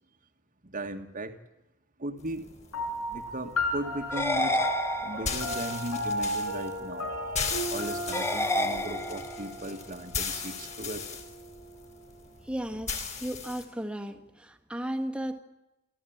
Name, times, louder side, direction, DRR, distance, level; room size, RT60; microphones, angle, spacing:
voice 1, 0.6-1.4 2.0-2.5 3.1-4.7 5.0-7.4 7.7-11.2, right 1 dB, 35° right, 4 dB, 1.7 m, -37 dB
sound 1, 2.2-13.6, left 5 dB, 30° left, 4.1 m, -38 dB
sound 2, 2.7-11.6, equal, 85° left, 6.4 m, -35 dB
sound 3, 4.1-5.5 8.1-9.5, left 1 dB, 10° left, 1.1 m, -30 dB
voice 2, 12.5-15.4, equal, 5° right, 4 dB, 1.7 m, -35 dB
28.0 x 14.0 x 8.7 m, 0.94 s
head